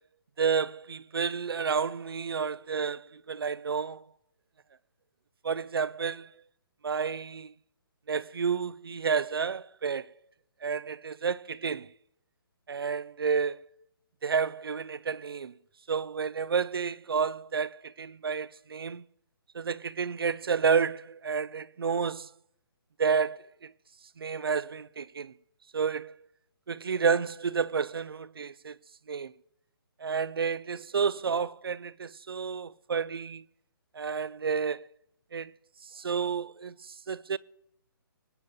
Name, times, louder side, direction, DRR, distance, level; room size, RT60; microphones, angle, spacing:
voice 1, 0.4-4.0 5.4-6.3 6.8-7.5 8.1-10.1 10.6-11.9 12.7-13.6 14.2-15.5 15.9-19.0 19.5-22.3 23.0-23.7 24.2-25.3 25.7-26.1 26.7-28.8 29.1-29.3 30.0-33.4 34.0-34.8 35.3-35.5 35.9-37.4, right 6 dB, 75° right, 0.4 m, -30 dB
25.0 x 8.4 x 2.3 m
figure-of-eight pair, 135°, 13 cm